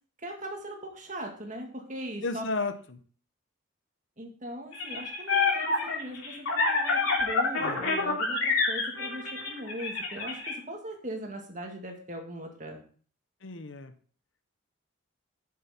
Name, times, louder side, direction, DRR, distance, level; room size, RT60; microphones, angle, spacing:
voice 1, 0.2-2.5 4.2-12.8, right 1 dB, 35° right, 2 dB, 2.0 m, -40 dB
voice 2, 2.2-3.0 7.6-7.8 13.4-13.9, left 3 dB, 65° left, 9 dB, 0.8 m, -33 dB
sound 1, 4.7-10.5, left 4 dB, 90° left, 3.2 m, -27 dB
7.6 x 7.5 x 4.3 m, 0.44 s
head